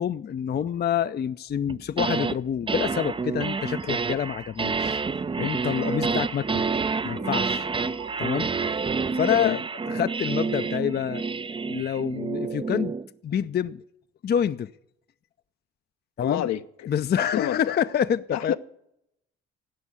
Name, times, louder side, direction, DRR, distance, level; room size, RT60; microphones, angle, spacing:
voice 1, 0.0-5.0 5.4-6.6 7.0-7.7 8.2-8.5 9.2-9.6 9.9-11.2 11.6-12.9 13.2-13.8 14.2-14.7 16.2-16.5 16.9-18.6, left 8 dB, 35° left, 0.5 m, -27 dB
sound 1, 1.7-2.4 2.7-13.1, right 4 dB, 20° right, 0.4 m, -28 dB
sound 2, 6.9-10.0, right 5 dB, 80° right, 7.0 m, -45 dB
voice 2, 9.3-9.6 16.2-16.9 17.2-17.8 18.3-18.6, left 11 dB, 65° left, 0.8 m, -28 dB
16.5 x 6.2 x 8.1 m
hypercardioid pair, 45°, 30 cm